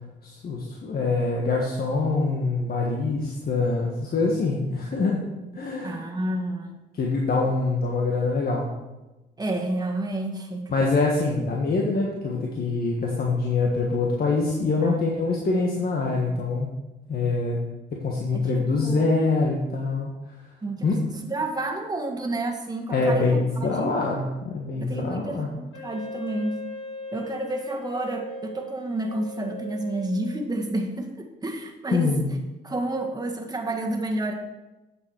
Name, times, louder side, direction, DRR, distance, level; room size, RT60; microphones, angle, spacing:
voice 1, 0.2-5.2 5.5-6.0 6.9-8.7 10.7-16.7 17.1-17.6 17.9-20.1 20.8-20.9 22.9-25.5 31.9-32.3, left 3 dB, 50° left, -1 dB, 1.6 m, -24 dB
voice 2, 5.8-6.7 9.4-10.7 14.8-15.0 18.3-19.1 20.6-23.3 23.7-23.9 24.8-26.6 27.1-32.1 32.6-34.3, right 2 dB, 20° right, 2 dB, 1.7 m, -30 dB
Wind instrument woodwind instrument, 25.7-30.8, left 1 dB, 80° left, 3.1 m, -39 dB
9.8 x 7.3 x 4.7 m, 1.0 s
cardioid pair, 90°, 20 cm